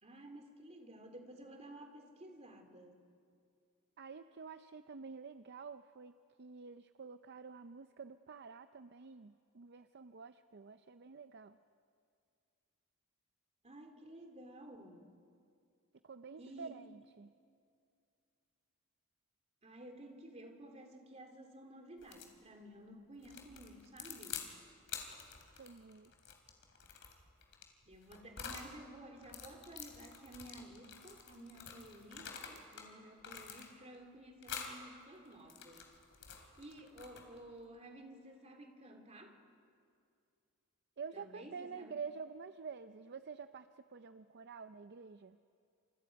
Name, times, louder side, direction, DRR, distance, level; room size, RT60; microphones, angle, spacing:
voice 1, 0.0-3.0 13.6-15.1 16.4-16.8 19.6-24.4 27.8-35.9 36.3-39.4 41.1-42.0, right 1 dB, 30° right, 3 dB, 2.9 m, -53 dB
voice 2, 4.0-6.1 6.4-11.6 16.0-17.3 25.6-26.1 41.0-43.7 43.9-45.4, right 5 dB, 50° right, 10 dB, 0.5 m, -49 dB
sound 1, 22.0-22.4 23.2-24.5 24.9-28.7 29.2-32.9 33.2-34.0 34.4-34.8 35.3-37.4, left 7 dB, 55° left, 3.1 m, -48 dB
29.0 x 27.0 x 5.3 m, 2.3 s
head